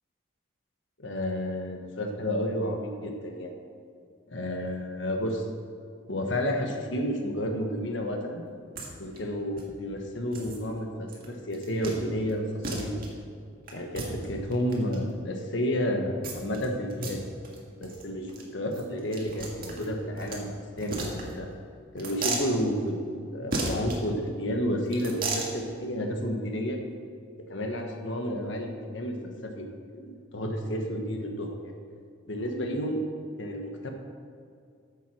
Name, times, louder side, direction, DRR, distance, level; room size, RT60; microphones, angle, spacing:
voice 1, 1.0-3.5 4.3-5.4 6.1-8.4 9.0-13.1 13.7-17.2 17.8-21.5 21.9-26.8 27.5-29.1 29.4-29.6 29.9-31.7 32.3-33.0 33.4-33.9, equal, 65° left, 3 dB, 1.4 m, -31 dB
sound 1, 8.8-8.9 9.1-9.2 9.6-9.7 10.3-10.6 11.1-11.3 11.5-12.0 12.3-12.4 12.6-13.1 13.7-15.0 16.2-16.6 16.9-17.1 17.4-17.6 17.8-18.0 18.3-18.4 18.7-20.4 20.8-21.5 22.0-22.5 23.5-24.0 24.9-25.5, right 3 dB, 45° right, 1.9 m, -34 dB
9.2 x 7.6 x 6.2 m, 2.3 s
head